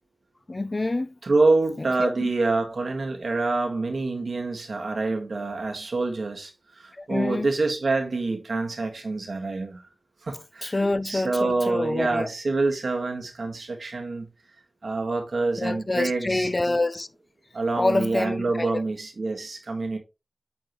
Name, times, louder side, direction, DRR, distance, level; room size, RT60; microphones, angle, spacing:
voice 1, 0.5-1.1 1.8-2.3 6.9-7.5 10.6-12.3 15.6-17.1 17.7-18.7, left 2 dB, 50° left, 0.5 m, -26 dB
voice 2, 1.2-9.8 10.2-10.7 11.0-14.3 14.8-16.5 17.5-20.0, right 3 dB, 90° right, 1.5 m, -26 dB
8.6 x 3.7 x 3.0 m
cardioid pair, 40°, 0 cm